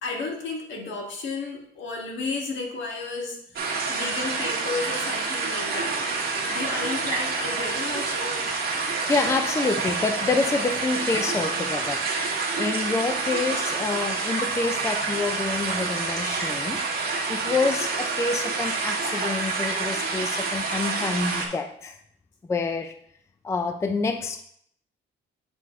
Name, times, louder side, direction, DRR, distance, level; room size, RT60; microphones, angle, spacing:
voice 1, 0.0-6.0 6.5-8.4, left 3 dB, 75° left, 0 dB, 1.6 m, -33 dB
sound 1, 3.6-21.5, right 4 dB, 50° right, 1.5 m, -28 dB
voice 2, 9.1-16.8 17.3-22.0 22.5-22.9 23.4-24.4, left 3 dB, 15° left, 7 dB, 0.4 m, -27 dB
7.9 x 4.7 x 3.5 m, 0.67 s
cardioid pair, 140°, 20 cm